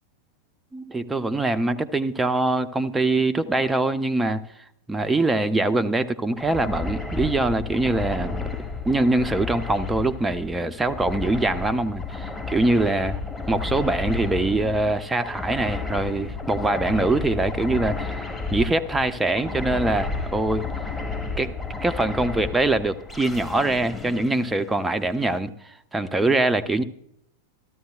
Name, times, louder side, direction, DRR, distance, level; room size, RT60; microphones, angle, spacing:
voice 1, 0.7-4.4 4.9-13.2 13.5-18.3 18.5-20.7 21.4-21.5 21.8-25.5 25.9-26.8, right 2 dB, 10° right, 11 dB, 0.6 m, -23 dB
sound 1, 6.4-25.2, left 3 dB, 10° left, 1.7 m, -32 dB
14.0 x 13.5 x 2.4 m, 0.73 s
figure-of-eight pair, 90°, 0 cm